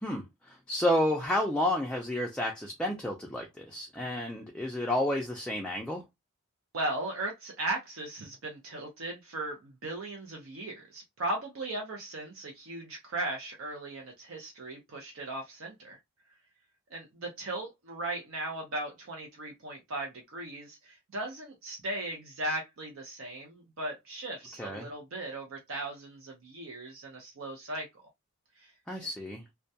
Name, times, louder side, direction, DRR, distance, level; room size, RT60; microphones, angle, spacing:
voice 1, 0.0-6.0 24.6-24.9 28.9-29.4, left 1 dB, 5° left, 0.3 m, -31 dB
voice 2, 6.7-16.0 16.9-27.9 28.6-28.7, right 2 dB, 65° right, 0.6 m, -37 dB
2.2 x 2.2 x 2.6 m
head